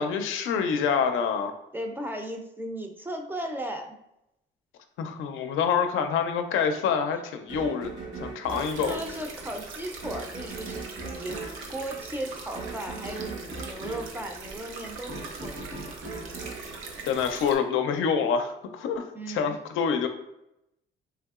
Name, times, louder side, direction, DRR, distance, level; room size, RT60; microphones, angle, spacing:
voice 1, 0.0-1.5 5.0-7.9 8.2-9.0 17.1-20.1, left 6 dB, 80° left, 6 dB, 0.4 m, -26 dB
voice 2, 1.7-4.0 8.5-11.4 11.7-15.6 19.1-19.6, right 1 dB, 10° right, 4 dB, 0.4 m, -36 dB
sound 1, 7.5-17.7, right 3 dB, 60° right, 1.1 m, -40 dB
sound 2, 8.5-17.5, right 4 dB, 85° right, 0.6 m, -42 dB
3.4 x 2.7 x 2.4 m, 0.85 s
cardioid pair, 90°, 20 cm